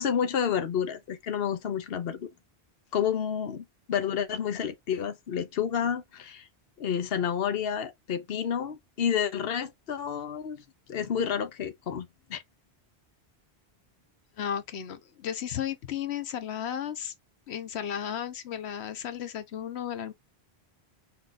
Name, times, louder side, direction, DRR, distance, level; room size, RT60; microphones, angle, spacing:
voice 1, 0.0-2.3 2.9-6.5 6.8-12.4, left 8 dB, 70° left, 1.0 m, -30 dB
voice 2, 14.4-17.1 17.5-20.1, left 9 dB, 90° left, 1.0 m, -34 dB
5.6 x 2.4 x 3.8 m
omnidirectional pair, 1.1 m